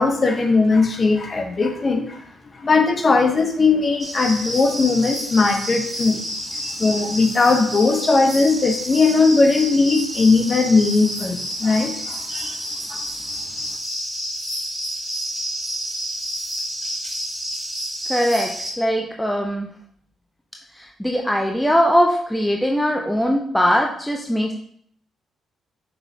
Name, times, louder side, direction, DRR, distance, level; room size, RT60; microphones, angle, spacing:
voice 1, 0.0-2.3 2.6-6.2 6.6-12.6 12.9-13.0, left 3 dB, 40° left, 4 dB, 1.0 m, -18 dB
sound 1, 4.0-18.7, equal, 10° right, 2.0 m, -29 dB
voice 2, 18.1-18.5 18.8-19.7 21.0-24.5, equal, 5° left, 1 dB, 0.7 m, -20 dB
6.1 x 5.5 x 2.8 m, 0.63 s
hypercardioid pair, 45°, 0 cm